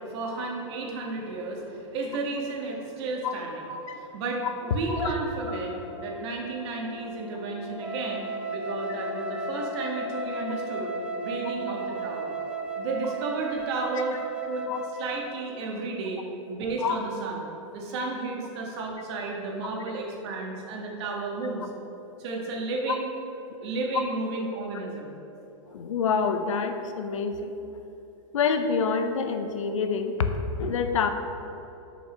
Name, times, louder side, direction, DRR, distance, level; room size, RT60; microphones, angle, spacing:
voice 1, 0.0-12.4 12.7-14.2 14.5-14.7 15.0-16.2 16.5-17.4 17.7-21.7 22.2-23.1 23.6-25.1, right 3 dB, 60° right, 0 dB, 1.7 m, -32 dB
Brass instrument, 4.6-13.0, left 1 dB, 20° left, 1.0 m, -42 dB
Wind instrument woodwind instrument, 7.8-15.4, right 3 dB, 5° right, 0.4 m, -35 dB
voice 2, 25.7-27.6 28.3-31.1, left 5 dB, 80° left, 7 dB, 0.8 m, -27 dB
6.4 x 5.3 x 6.1 m, 3.0 s
hypercardioid pair, 120°, 16 cm